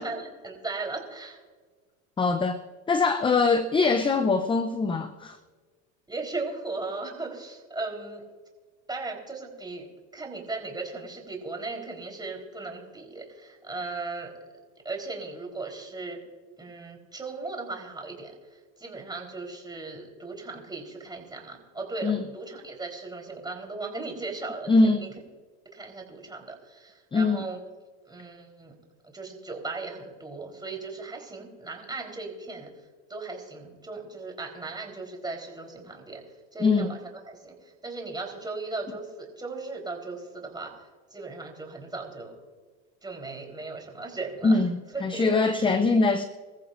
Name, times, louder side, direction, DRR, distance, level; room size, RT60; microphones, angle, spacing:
voice 1, 0.0-1.4 6.1-8.2 8.9-9.9 10.1-14.3 14.8-16.2 16.6-18.3 18.8-25.1 25.7-27.6 28.1-28.7 29.1-32.7 33.1-36.2 36.5-37.0 37.3-42.4 43.0-44.6 44.9-45.7, right 3 dB, 10° right, 1 dB, 4.0 m, -37 dB
voice 2, 2.2-2.6 2.9-5.4 22.0-22.2 24.7-25.1 27.1-27.4 36.6-36.9 44.4-46.2, left 3 dB, 15° left, 10 dB, 0.6 m, -23 dB
25.0 x 14.5 x 2.6 m, 1.5 s
supercardioid pair, 115°, 39 cm